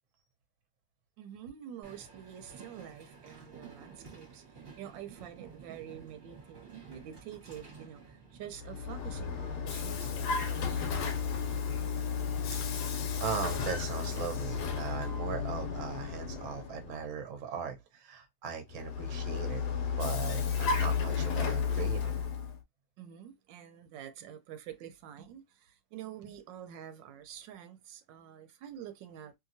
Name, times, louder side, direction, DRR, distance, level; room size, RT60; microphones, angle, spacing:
voice 1, 1.2-4.4 4.7-10.9 23.0-29.3, right 10 dB, 90° right, 1.3 m, -47 dB
Train, 1.8-14.4, right 5 dB, 35° right, 1.0 m, -53 dB
Vehicle, 8.5-17.0 18.7-22.6, left 6 dB, 75° left, 1.2 m, -33 dB
voice 2, 12.5-19.6 20.0-22.2, right 6 dB, 55° right, 0.9 m, -39 dB
2.8 x 2.7 x 2.6 m
omnidirectional pair, 1.9 m